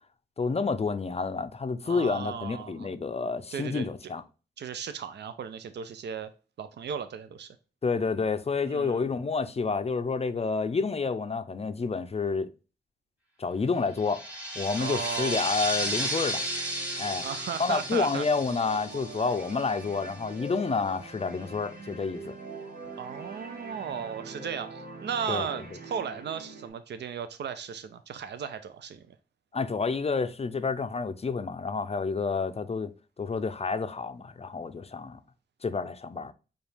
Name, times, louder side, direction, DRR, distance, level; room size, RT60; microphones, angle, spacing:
voice 1, 0.4-4.2 7.8-12.5 13.4-14.2 14.6-16.4 17.0-17.3 17.6-22.3 25.3-25.5 29.5-35.2 35.6-36.3, left 4 dB, 35° left, 0.4 m, -29 dB
voice 2, 1.8-2.9 3.5-3.9 4.6-6.3 6.6-7.5 8.6-9.0 14.8-15.4 17.2-18.3 23.0-29.2, right 7 dB, 80° right, 0.4 m, -36 dB
sound 1, 14.0-20.3, right 1 dB, 5° right, 1.4 m, -34 dB
sound 2, 15.6-26.7, right 2 dB, 60° right, 0.9 m, -44 dB
5.0 x 2.3 x 3.2 m
cardioid pair, 55°, 18 cm